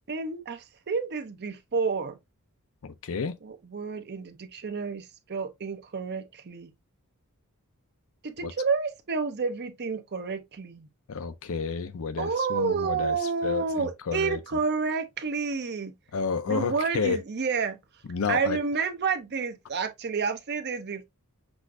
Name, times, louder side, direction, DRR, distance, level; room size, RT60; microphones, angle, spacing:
voice 1, 0.1-2.2 3.4-6.7 8.2-10.9 12.2-15.9 16.5-17.8 18.3-21.0, right 5 dB, 50° right, 0.6 m, -30 dB
voice 2, 2.8-3.4 8.4-8.5 11.1-14.6 16.1-17.2 18.1-18.6, left 5 dB, 65° left, 0.5 m, -31 dB
6.1 x 2.5 x 2.4 m
head